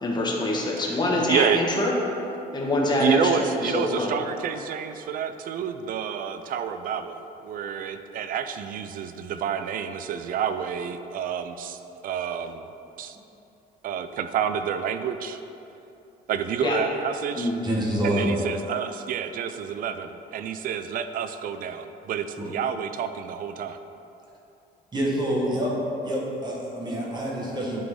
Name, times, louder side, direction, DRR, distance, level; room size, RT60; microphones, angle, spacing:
voice 1, 0.0-1.9 2.5-3.5 3.7-4.2 16.6-16.8 17.4-17.6, left 2 dB, 25° left, -2 dB, 1.4 m, -25 dB
voice 2, 1.3-1.6 3.0-12.7 13.0-13.2 13.8-15.4 16.3-17.5 18.0-23.8, right 8 dB, 55° right, 9 dB, 0.5 m, -29 dB
voice 3, 17.6-18.4 22.4-22.5 24.9-25.7 26.0-27.8, right 1 dB, 25° right, -4 dB, 1.6 m, -27 dB
10.5 x 4.0 x 3.8 m, 2.9 s
cardioid pair, 110°, 17 cm